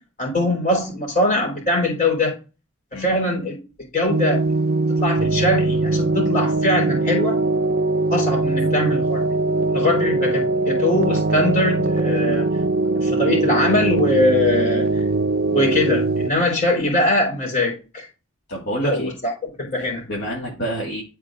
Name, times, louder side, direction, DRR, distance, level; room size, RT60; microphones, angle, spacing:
voice 1, 0.2-2.4 2.9-3.6 3.9-4.4 5.0-7.4 8.1-9.3 9.7-12.5 13.0-15.0 15.5-18.1 18.7-19.3 19.6-20.1, left 1 dB, 40° left, 3.7 m, -22 dB
sound 1, 4.1-16.3, right 2 dB, 45° right, 0.4 m, -21 dB
voice 2, 18.5-19.1 19.8-21.0, right 1 dB, 55° left, 1.9 m, -28 dB
11.5 x 4.3 x 2.5 m
head